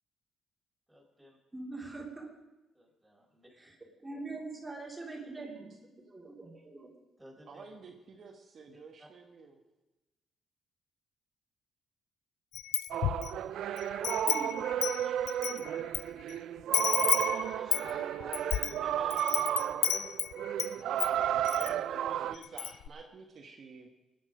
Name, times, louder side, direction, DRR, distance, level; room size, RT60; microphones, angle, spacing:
voice 1, 0.9-1.4 2.7-3.5 7.2-7.7 9.0-9.1 17.1-19.4, right 1 dB, 5° right, -2 dB, 5.1 m, -51 dB
voice 2, 1.5-2.3 3.6-3.7 4.0-6.9 14.2-15.2, right 3 dB, 20° right, -1 dB, 3.1 m, -43 dB
voice 3, 7.5-9.6 20.8-23.9, right 4 dB, 55° right, 1 dB, 1.5 m, -51 dB
Wind chime, 12.5-13.4 13.8-16.0 16.3-16.4 16.7-20.7 21.0-21.7 22.1-22.2 22.4-22.9, left 12 dB, 85° left, 0.4 m, -32 dB
sound 1, 12.9-22.4, right 11 dB, 75° right, 0.4 m, -33 dB
19.5 x 10.0 x 5.1 m, 1.0 s
cardioid pair, 90°, 0 cm